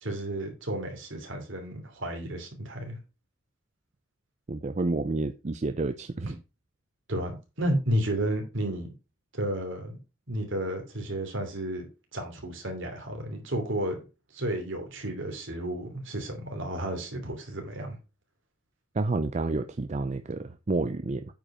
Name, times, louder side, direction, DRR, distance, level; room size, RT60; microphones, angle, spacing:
voice 1, 0.0-3.0 7.1-8.9 9.3-9.9 10.3-11.8 12.1-14.0 14.3-18.0, right 1 dB, 60° right, 2.9 m, -32 dB
voice 2, 4.5-6.4 18.9-21.2, right 3 dB, 35° right, 0.5 m, -29 dB
9.0 x 5.1 x 5.0 m
head